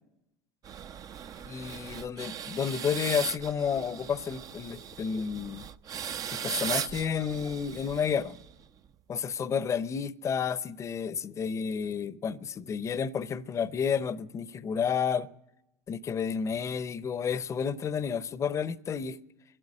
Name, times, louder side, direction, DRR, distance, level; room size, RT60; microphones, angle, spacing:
sound 1, 0.6-8.6, right 8 dB, 45° right, 0.8 m, -38 dB
voice 1, 1.5-5.7 6.3-8.4 9.1-15.3 15.9-19.2, left 7 dB, 35° left, 0.8 m, -31 dB
23.5 x 12.5 x 10.0 m
hypercardioid pair, 75°, 9 cm